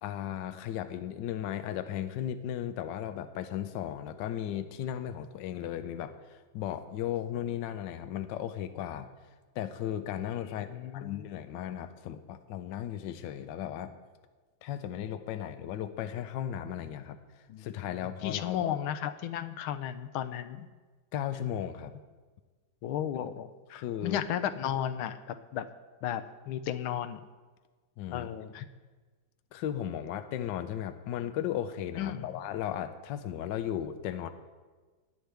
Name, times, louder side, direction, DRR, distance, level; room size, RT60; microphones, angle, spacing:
voice 1, 0.0-9.1 9.5-14.0 14.6-17.2 17.6-18.7 21.1-21.9 23.7-24.2 28.0-28.3 29.5-34.3, left 10 dB, 70° left, 8 dB, 1.3 m, -36 dB
voice 2, 10.5-11.2 17.5-17.7 18.2-20.7 22.8-25.6 26.0-27.2 28.1-28.7 32.0-32.3, left 10 dB, 85° left, 11 dB, 1.5 m, -34 dB
19.5 x 9.6 x 3.5 m, 1.4 s
omnidirectional pair, 2.2 m